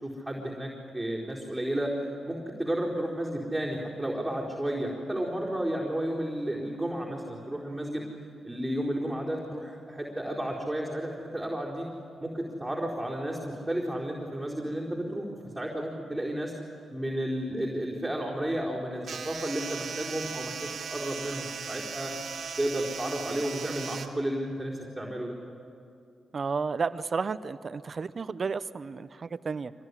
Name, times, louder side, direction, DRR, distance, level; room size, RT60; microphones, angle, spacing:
voice 1, 0.0-1.9 2.2-8.1 8.4-11.9 12.2-15.3 15.5-16.5 16.9-22.1 22.6-25.4, right 1 dB, 10° right, -5 dB, 4.4 m, -32 dB
sound 1, 19.0-24.1, right 6 dB, 65° right, 2.1 m, -38 dB
voice 2, 26.3-29.7, right 5 dB, 50° right, 15 dB, 0.8 m, -32 dB
24.5 x 18.5 x 9.8 m, 2.5 s
supercardioid pair, 55°, 0 cm